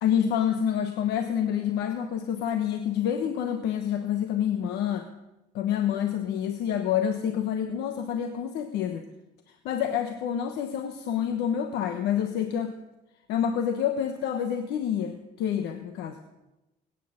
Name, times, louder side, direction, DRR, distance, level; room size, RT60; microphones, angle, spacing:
voice 1, 0.0-5.1 5.5-9.1 9.5-12.7 13.3-16.2, left 9 dB, 85° left, 7 dB, 1.1 m, -28 dB
20.5 x 9.5 x 6.5 m, 1.0 s
cardioid pair, 110°, 17 cm